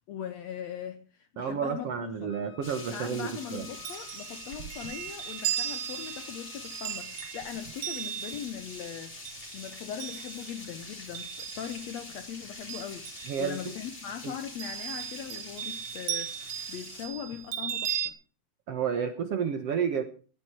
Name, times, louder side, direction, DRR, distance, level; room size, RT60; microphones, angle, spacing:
voice 1, 0.0-2.3 2.8-18.1, left 9 dB, 75° left, 1.6 m, -40 dB
voice 2, 1.4-3.7 13.3-13.6 14.2-14.3 18.7-20.0, right 7 dB, 60° right, 1.8 m, -31 dB
Wind instrument woodwind instrument, 2.3-7.0, left 8 dB, 40° left, 2.2 m, -53 dB
sound 1, 2.6-17.1, left 2 dB, 20° left, 3.6 m, -45 dB
Chime, 3.6-12.1 12.4-13.8 14.6-18.1, right 11 dB, 75° right, 1.4 m, -37 dB
16.0 x 12.5 x 4.5 m
omnidirectional pair, 4.1 m